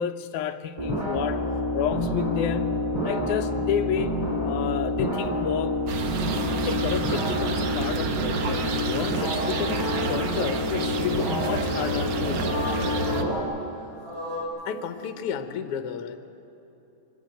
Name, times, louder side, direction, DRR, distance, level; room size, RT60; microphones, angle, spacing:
voice 1, 0.0-1.4 1.7-5.8 6.5-12.6, left 8 dB, 85° left, 8 dB, 2.1 m, -31 dB
sound 1, 0.8-13.4, left 1 dB, 10° right, 2.1 m, -28 dB
sound 2, 5.9-13.2, right 5 dB, 75° right, 1.0 m, -31 dB
sound 3, 7.6-14.5, left 1 dB, 60° right, 6.1 m, -36 dB
voice 2, 14.6-16.2, left 7 dB, 65° left, 8 dB, 1.7 m, -32 dB
24.0 x 12.0 x 9.2 m, 3.0 s
omnidirectional pair, 3.4 m